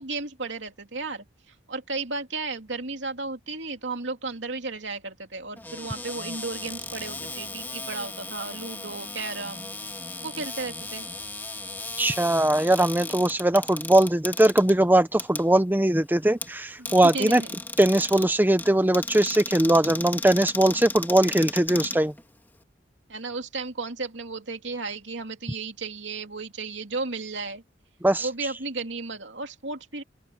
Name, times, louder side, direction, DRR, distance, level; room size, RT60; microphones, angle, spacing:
voice 1, 0.0-9.7 10.2-11.1 16.8-17.6 23.1-27.6 28.2-30.0, right 3 dB, 70° right, 2.9 m, -34 dB
Cupboard open or close, 5.6-22.6, left 2 dB, 10° left, 2.0 m, -36 dB
voice 2, 12.0-17.4 17.8-22.1 28.0-28.3, right 1 dB, 10° right, 0.7 m, -20 dB
open air
head